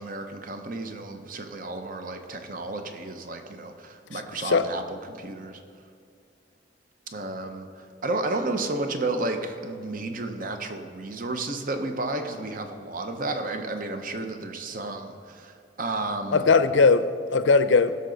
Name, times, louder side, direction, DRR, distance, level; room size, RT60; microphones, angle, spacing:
voice 1, 0.0-5.6 7.1-16.5, right 2 dB, 45° right, 6 dB, 0.8 m, -32 dB
voice 2, 4.1-4.7 16.3-18.0, left 4 dB, 70° left, 12 dB, 0.5 m, -20 dB
16.5 x 6.7 x 3.9 m, 2.4 s
head